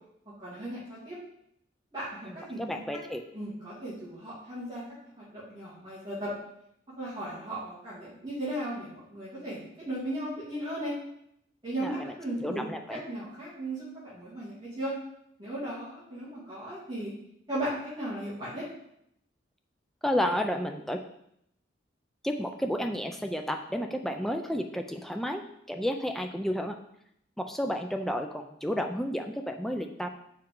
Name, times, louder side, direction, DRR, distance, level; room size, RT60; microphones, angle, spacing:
voice 1, 0.4-1.2 1.9-2.8 3.3-4.8 5.2-6.3 7.0-10.9 11.6-14.9 15.4-17.1 17.5-18.6, right 1 dB, 25° right, -11 dB, 2.4 m, -36 dB
voice 2, 2.3-3.2 11.8-12.1 12.4-13.0 20.0-21.0 22.2-25.4 25.7-26.8 27.4-30.1, equal, ahead, 3 dB, 0.4 m, -31 dB
6.7 x 4.3 x 3.8 m, 0.76 s
head